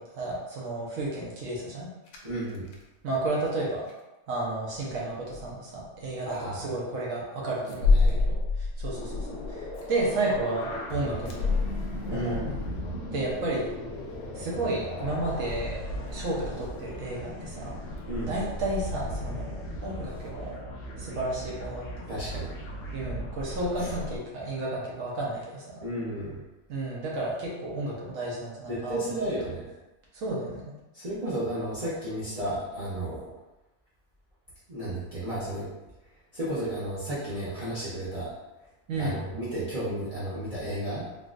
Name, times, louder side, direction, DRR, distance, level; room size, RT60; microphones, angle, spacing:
voice 1, 0.0-1.9 3.0-3.9 4.3-11.5 12.1-12.4 13.1-13.7 14.3-15.8 16.1-17.7 18.3-19.5 19.8-20.5 21.0-22.1 22.9-25.7 26.7-29.2 30.1-30.6 38.9-39.2, right 2 dB, 65° right, -4 dB, 1.1 m, -32 dB
sound 1, 2.1-2.8 3.3-3.5 3.8-3.9 4.7-5.0 5.3-5.5 5.8-5.9 7.7-13.5 13.9-14.0 14.2-14.3 18.0-18.1, left 4 dB, 85° left, 1.1 m, -29 dB
voice 2, 2.2-2.7 6.2-6.6 7.7-8.2 12.1-12.7 18.1-18.3 22.1-22.6 25.8-26.4 28.7-29.7 30.9-33.3 34.7-35.7 36.3-38.3 39.0-41.0, right 1 dB, 40° right, -10 dB, 0.5 m, -33 dB
sound 2, 8.9-24.2, left 1 dB, 65° left, 0.8 m, -37 dB
3.7 x 2.3 x 2.4 m, 1.0 s
omnidirectional pair, 1.6 m